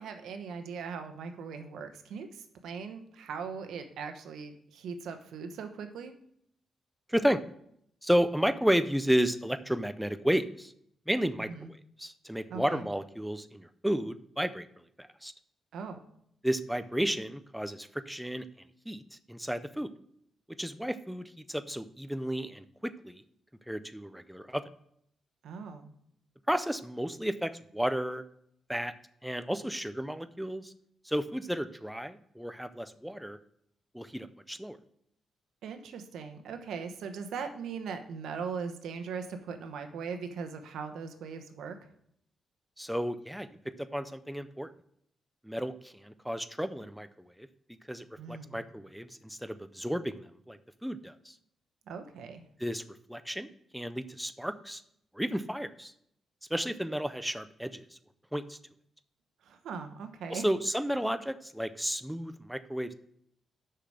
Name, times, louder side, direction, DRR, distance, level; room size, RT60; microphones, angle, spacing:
voice 1, 0.0-6.1 11.5-11.7 12.5-12.8 15.7-16.0 25.4-25.9 35.6-41.7 48.2-48.6 51.9-52.4 59.4-60.4, right 5 dB, 85° right, 7 dB, 1.0 m, -40 dB
voice 2, 7.1-7.4 8.0-10.7 11.1-14.7 15.0-15.3 16.4-19.9 20.6-23.2 23.7-24.6 26.5-28.2 28.7-28.9 29.2-30.7 31.0-33.4 33.9-34.8 42.8-44.7 45.4-47.5 47.9-51.4 52.6-52.8 53.1-54.8 55.1-55.9 56.5-58.0 58.3-58.6 60.3-62.9, equal, ahead, 11 dB, 0.4 m, -32 dB
6.6 x 5.8 x 6.4 m, 0.71 s
cardioid pair, 130°, 0 cm